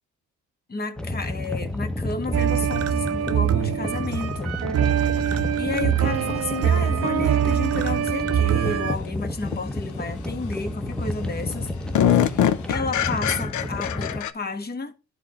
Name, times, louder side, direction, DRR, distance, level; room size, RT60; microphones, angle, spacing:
voice 1, 0.7-4.6 5.6-11.7 12.1-14.9, left 3 dB, 30° left, 1.4 m, -32 dB
sound 1, 1.0-14.2, left 1 dB, 5° left, 0.9 m, -31 dB
sound 2, 2.3-9.0, right 10 dB, 55° right, 0.7 m, -23 dB
sound 3, 6.7-6.8 9.5-9.7 10.1-10.6 11.0-11.1 11.4-14.3, left 10 dB, 75° left, 0.8 m, -24 dB
11.0 x 4.0 x 3.1 m
cardioid pair, 90°, 30 cm